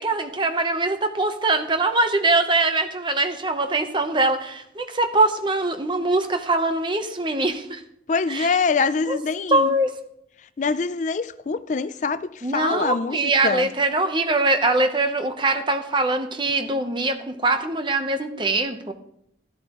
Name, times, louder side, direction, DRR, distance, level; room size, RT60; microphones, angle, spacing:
voice 1, 0.0-7.8 8.3-8.5 9.1-9.2 9.5-9.9 12.4-18.9, right 2 dB, 25° right, 0.9 m, -22 dB
voice 2, 8.1-9.8 10.6-13.7, left 4 dB, 40° left, 0.4 m, -24 dB
13.0 x 11.5 x 3.0 m
head